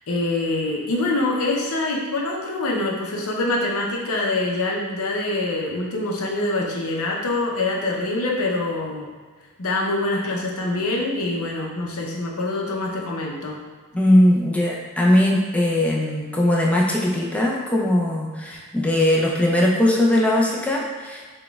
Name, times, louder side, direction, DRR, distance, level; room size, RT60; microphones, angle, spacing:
voice 1, 0.1-9.1 9.6-13.6, left 2 dB, 65° left, -1 dB, 0.7 m, -25 dB
voice 2, 13.9-21.2, left 1 dB, 5° left, -3 dB, 0.4 m, -19 dB
4.0 x 2.2 x 3.4 m, 1.5 s
head